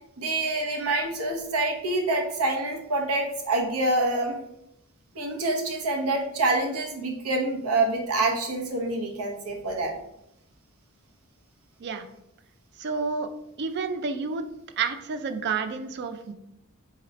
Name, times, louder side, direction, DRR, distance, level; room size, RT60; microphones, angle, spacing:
voice 1, 0.2-4.4 5.1-9.9, right 2 dB, 90° right, 2 dB, 0.9 m, -26 dB
voice 2, 12.8-13.3 13.6-14.4 14.8-16.3, right 5 dB, 55° right, 9 dB, 0.4 m, -29 dB
3.8 x 3.0 x 4.1 m, 0.81 s
head